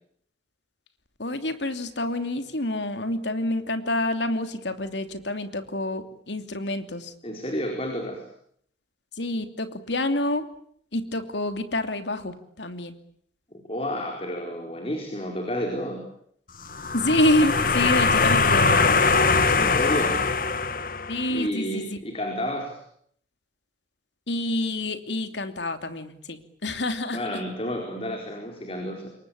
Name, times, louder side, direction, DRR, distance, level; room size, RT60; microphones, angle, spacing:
voice 1, 1.2-7.1 9.2-10.5 10.9-12.9 16.9-19.8 21.1-22.0 24.3-27.2, left 1 dB, 85° left, 9 dB, 2.9 m, -27 dB
voice 2, 7.2-8.3 13.5-16.0 19.6-20.2 21.3-22.8 27.1-29.1, equal, 35° left, 3 dB, 4.6 m, -30 dB
sound 1, 16.6-21.4, left 4 dB, 50° left, 1.6 m, -22 dB
28.0 x 23.0 x 8.7 m, 0.66 s
head